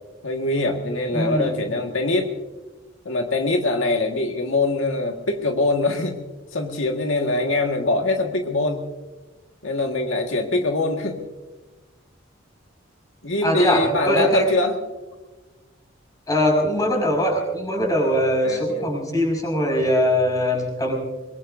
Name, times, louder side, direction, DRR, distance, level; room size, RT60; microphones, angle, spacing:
voice 1, 0.2-2.3 3.1-6.2 6.5-8.9 9.6-11.2 13.2-14.7 18.4-18.8, left 2 dB, 85° left, 2 dB, 1.8 m, -23 dB
voice 2, 1.1-1.7 13.4-14.5 16.3-21.0, equal, 20° left, 1 dB, 5.6 m, -21 dB
22.5 x 22.5 x 2.7 m, 1.2 s
head